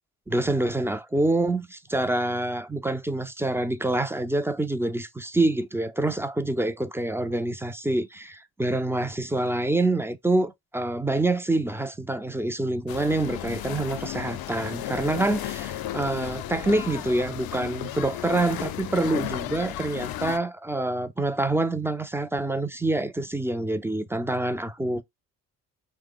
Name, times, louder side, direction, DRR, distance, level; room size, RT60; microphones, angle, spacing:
voice 1, 0.3-25.0, right 2 dB, 5° right, 0.3 m, -26 dB
sound 1, 12.9-20.4, left 13 dB, 50° left, 0.5 m, -34 dB
2.9 x 2.1 x 3.8 m
hypercardioid pair, 40°, 46 cm